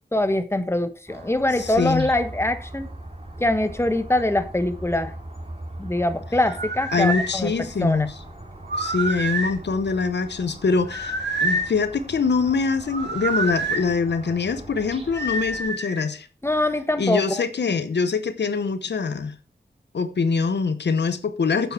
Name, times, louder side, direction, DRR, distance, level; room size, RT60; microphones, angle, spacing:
voice 1, 0.1-2.9 3.4-5.1 5.8-7.5 7.8-8.1 16.4-17.4, left 1 dB, 15° left, 1.2 m, -23 dB
sound 1, 1.1-15.6, right 1 dB, 35° right, 3.0 m, -40 dB
voice 2, 1.6-2.1 6.9-8.1 8.8-16.3 17.0-19.3 19.9-21.7, left 5 dB, 90° left, 0.8 m, -24 dB
sound 2, 6.4-7.3 8.6-9.6 10.9-11.7 12.9-13.8 15.1-16.0, right 2 dB, 90° right, 1.9 m, -27 dB
9.0 x 6.9 x 4.6 m
wide cardioid pair, 55°, 17 cm